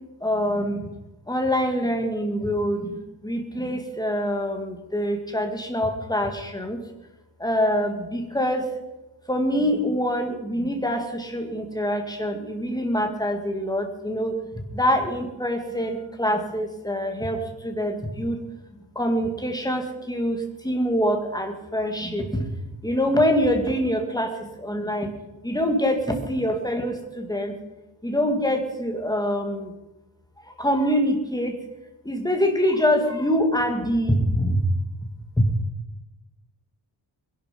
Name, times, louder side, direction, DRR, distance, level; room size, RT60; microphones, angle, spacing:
voice 1, 0.2-0.9 1.3-3.0 3.2-6.8 7.4-8.7 9.3-14.4 14.7-18.4 19.0-22.5 22.8-25.1 25.4-27.5 28.0-29.7 30.5-31.6 32.0-34.6 35.4-35.5, equal, 10° left, 4 dB, 2.2 m, -25 dB
21.0 x 11.5 x 5.4 m, 1.0 s
wide cardioid pair, 135°, 49 cm